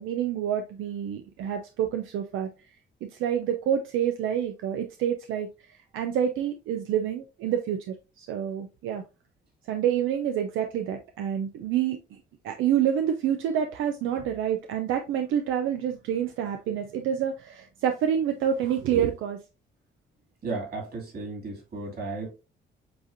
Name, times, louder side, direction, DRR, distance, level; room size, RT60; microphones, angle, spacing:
voice 1, 0.0-2.5 3.0-9.0 9.7-12.2 12.4-19.4, right 9 dB, 85° right, 0.5 m, -28 dB
voice 2, 20.4-22.3, right 3 dB, 50° right, 2.6 m, -34 dB
7.6 x 2.6 x 2.6 m
cardioid pair, 90°, 20 cm